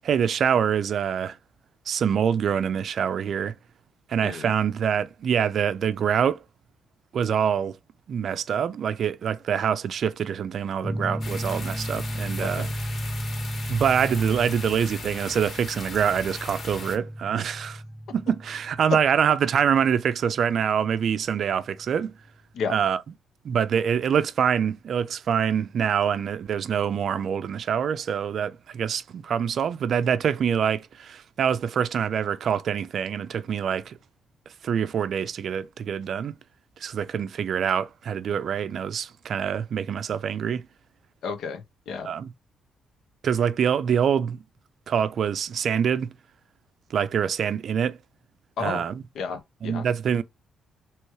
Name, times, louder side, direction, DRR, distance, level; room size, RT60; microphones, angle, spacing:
voice 1, 0.0-1.4 1.9-3.5 4.1-6.4 7.1-7.8 8.1-12.7 13.7-17.8 18.1-22.1 22.7-23.0 23.4-33.9 34.6-36.3 36.8-40.7 42.1-42.3 43.2-44.4 44.9-46.1 46.9-48.0 48.6-48.9 49.6-50.2, right 8 dB, 60° right, 0.4 m, -25 dB
sound 1, 10.8-22.0, equal, ahead, 0.5 m, -35 dB
sound 2, 11.2-17.0, left 3 dB, 45° left, 1.8 m, -38 dB
voice 2, 12.4-12.7 18.9-19.0 22.5-22.7 41.2-42.1 48.6-48.9 49.1-49.9, left 5 dB, 70° left, 1.0 m, -31 dB
3.1 x 3.0 x 4.6 m
cardioid pair, 90°, 0 cm